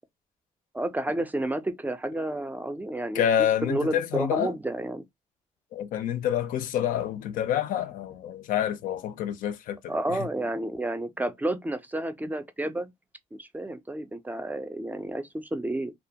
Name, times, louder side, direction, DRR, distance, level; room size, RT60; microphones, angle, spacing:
voice 1, 0.7-3.3 3.6-5.0 9.9-12.9 13.3-15.9, right 1 dB, 10° right, 0.4 m, -31 dB
voice 2, 3.1-4.5 5.7-9.8 10.1-10.3, left 10 dB, 75° left, 0.4 m, -27 dB
2.4 x 2.2 x 2.7 m
cardioid pair, 90°, 14 cm